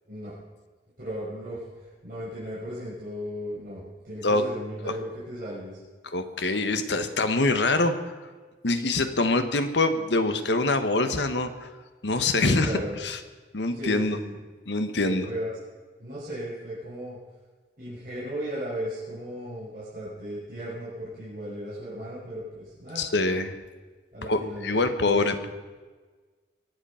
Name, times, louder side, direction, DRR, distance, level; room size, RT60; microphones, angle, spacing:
voice 1, 1.0-1.6 2.0-5.8 12.4-12.9 13.7-14.4 15.0-15.5 16.0-17.2 17.8-23.0 24.1-25.5, equal, 50° right, -10 dB, 6.2 m, -36 dB
voice 2, 6.1-8.1 8.6-11.7 12.0-13.2 13.5-14.2 14.7-15.3 22.9-23.6 24.3-25.5, left 2 dB, 80° left, 9 dB, 1.2 m, -25 dB
23.0 x 8.1 x 5.7 m, 1.4 s
head